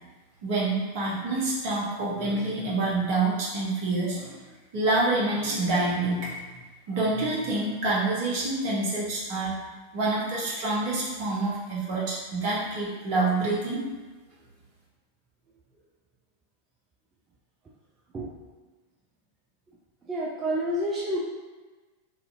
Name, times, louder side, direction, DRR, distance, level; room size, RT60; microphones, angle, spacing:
voice 1, 0.4-4.4 4.7-6.4 6.9-9.5 9.9-13.8, right 2 dB, 45° right, -5 dB, 0.8 m, -27 dB
voice 2, 20.1-21.2, equal, 20° right, -5 dB, 0.4 m, -28 dB
2.6 x 2.4 x 2.5 m, 1.3 s
figure-of-eight pair, 90°, 0 cm